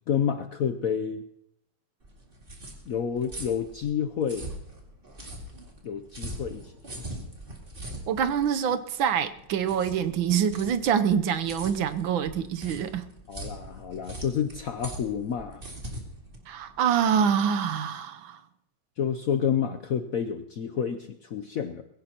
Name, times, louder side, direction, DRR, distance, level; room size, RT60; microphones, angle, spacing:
voice 1, 0.1-1.2 2.9-4.5 5.8-6.7 13.3-15.6 19.0-21.8, left 8 dB, 70° left, 8 dB, 0.8 m, -29 dB
sound 1, 2.0-17.2, right 1 dB, 25° right, 2.3 m, -42 dB
voice 2, 8.1-13.1 16.5-18.4, right 8 dB, 80° right, 10 dB, 1.6 m, -25 dB
21.0 x 16.5 x 2.9 m, 0.79 s
omnidirectional pair, 2.2 m